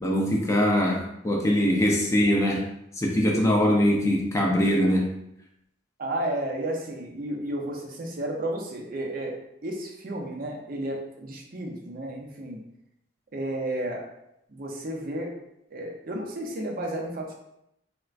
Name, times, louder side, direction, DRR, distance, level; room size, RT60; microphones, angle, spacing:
voice 1, 0.0-2.7 2.9-5.1, equal, 15° left, -1 dB, 0.4 m, -22 dB
voice 2, 6.0-9.4 9.6-12.6 13.3-14.0 14.5-15.3 15.7-17.3, right 1 dB, 50° right, 0 dB, 0.6 m, -32 dB
4.2 x 2.2 x 2.4 m, 0.81 s
head